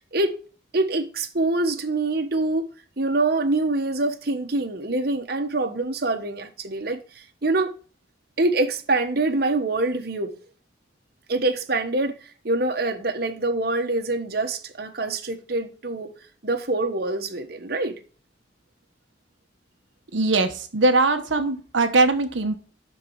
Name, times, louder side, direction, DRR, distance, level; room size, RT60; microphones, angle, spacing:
voice 1, 0.7-2.7 3.0-7.7 8.4-10.3 11.3-16.1 16.4-18.0, right 2 dB, 55° right, 1.3 m, -25 dB
voice 2, 20.1-22.6, right 2 dB, 90° right, 1.1 m, -21 dB
12.0 x 4.6 x 4.6 m
head